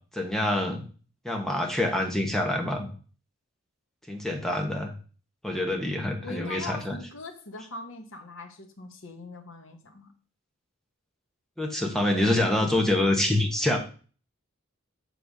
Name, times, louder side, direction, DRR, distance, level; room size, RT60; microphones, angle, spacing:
voice 1, 0.1-0.8 1.2-2.9 4.1-4.9 5.4-7.0 11.6-13.8, left 1 dB, ahead, 2 dB, 1.2 m, -26 dB
voice 2, 6.2-10.1, left 3 dB, 70° left, 4 dB, 1.2 m, -41 dB
7.8 x 3.4 x 6.5 m, 0.39 s
head